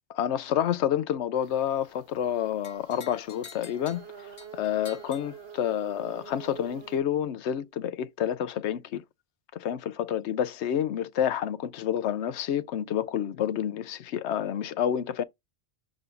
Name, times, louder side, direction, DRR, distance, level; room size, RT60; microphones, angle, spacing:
voice 1, 0.1-9.0 9.5-15.2, left 10 dB, 85° left, 0.9 m, -29 dB
sound 1, 1.4-7.0, right 7 dB, 65° right, 1.0 m, -47 dB
sound 2, 2.6-6.0, left 4 dB, 60° left, 1.5 m, -49 dB
6.9 x 3.8 x 3.7 m
omnidirectional pair, 1.1 m